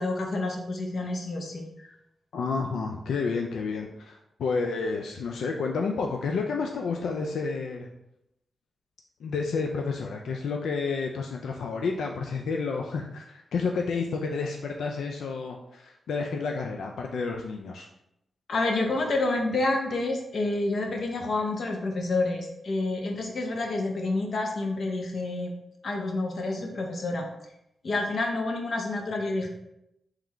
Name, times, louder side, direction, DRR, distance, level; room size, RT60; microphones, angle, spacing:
voice 1, 0.0-1.9 18.5-25.5 25.8-27.3 27.8-29.5, left 2 dB, 60° left, 2 dB, 0.7 m, -28 dB
voice 2, 2.3-7.9 9.2-17.9, left 4 dB, 90° left, 2 dB, 0.3 m, -30 dB
3.7 x 3.1 x 3.4 m, 0.83 s
cardioid pair, 90°, 0 cm